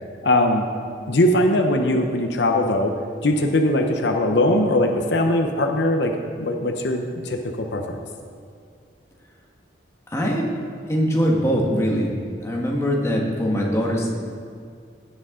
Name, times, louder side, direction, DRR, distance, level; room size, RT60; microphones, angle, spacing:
voice 1, 0.2-0.7 1.1-2.9 3.2-6.1 6.4-8.0, left 1 dB, 70° left, 4 dB, 0.8 m, -20 dB
voice 2, 10.1-10.5 10.9-12.1 12.4-14.1, equal, 15° left, -2 dB, 1.5 m, -22 dB
16.5 x 8.1 x 3.8 m, 2.2 s
head